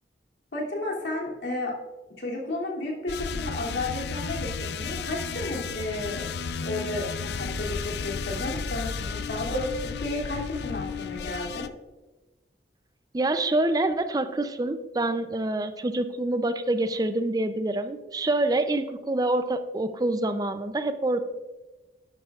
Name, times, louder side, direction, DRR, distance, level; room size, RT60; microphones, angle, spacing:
voice 1, 0.5-1.7 2.1-6.3 6.6-11.7, left 2 dB, 80° left, -3 dB, 2.7 m, -32 dB
sound 1, 3.1-11.7, left 5 dB, 65° left, 0.4 m, -33 dB
voice 2, 13.1-21.2, right 2 dB, 20° right, 10 dB, 0.4 m, -26 dB
11.0 x 11.0 x 2.4 m, 1.2 s
head